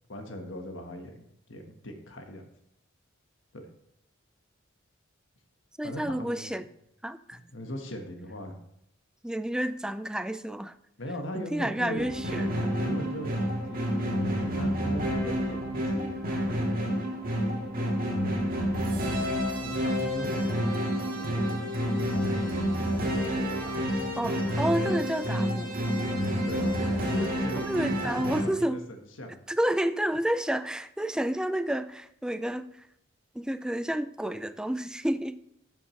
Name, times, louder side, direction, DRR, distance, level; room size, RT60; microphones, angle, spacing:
voice 1, 0.1-2.4 3.5-3.7 5.8-6.6 7.3-8.6 11.0-12.1 12.8-16.5 17.8-18.0 19.6-22.6 23.1-24.1 26.2-28.8 29.2-29.4, equal, 70° left, 5 dB, 1.4 m, -40 dB
voice 2, 5.8-6.6 7.0-7.4 9.2-10.7 11.3-12.7 24.2-25.7 27.6-28.8 29.5-32.7 33.3-35.4, right 1 dB, 5° right, 12 dB, 0.3 m, -30 dB
sound 1, 12.0-28.4, equal, 50° right, 1.8 m, -29 dB
12.0 x 6.0 x 3.2 m, 0.76 s
head